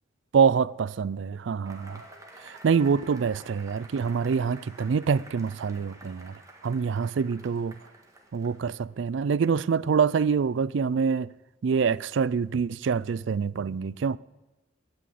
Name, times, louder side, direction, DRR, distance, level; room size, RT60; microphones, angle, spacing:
voice 1, 0.3-2.0 2.4-6.3 6.6-7.8 8.3-11.3 11.6-14.2, right 6 dB, 65° right, 0.4 m, -25 dB
Cheering / Applause / Crowd, 1.7-8.9, right 2 dB, 15° right, 1.6 m, -50 dB
16.5 x 6.2 x 8.4 m
head